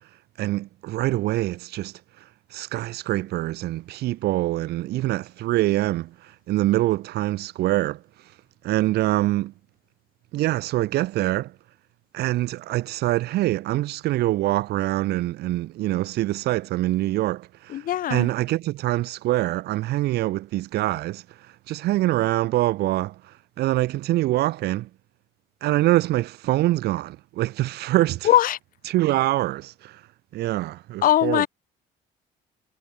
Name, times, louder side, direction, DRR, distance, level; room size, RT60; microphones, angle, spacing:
voice 1, 0.4-1.9 2.5-6.1 6.5-8.0 8.6-9.5 10.3-11.5 12.1-17.8 18.1-21.2 21.7-23.1 23.6-24.9 25.6-28.3 28.9-30.0 30.3-31.5, right 16 dB, 75° right, 1.2 m, -24 dB
voice 2, 17.7-18.3 28.2-28.6 31.0-31.5, left 12 dB, 55° left, 0.8 m, -20 dB
cardioid pair, 110°, 17 cm